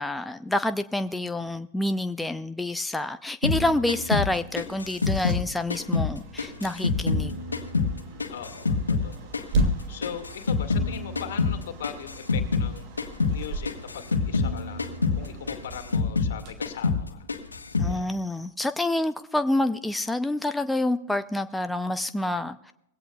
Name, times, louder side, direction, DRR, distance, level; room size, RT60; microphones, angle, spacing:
voice 1, 0.0-7.4 17.8-22.7, left 1 dB, 5° left, 0.5 m, -28 dB
sound 1, 3.4-6.1 6.4-9.1 9.3-12.7 13.0-13.4 13.6-16.4 16.6-17.0 17.3-17.9, left 4 dB, 90° left, 1.5 m, -26 dB
sound 2, 4.6-17.5, right 3 dB, 45° right, 2.4 m, -37 dB
voice 2, 8.3-12.9 13.3-14.9 15.1-17.3 17.8-18.2, left 9 dB, 65° left, 2.0 m, -40 dB
21.0 x 16.5 x 2.3 m
hypercardioid pair, 100°, 0 cm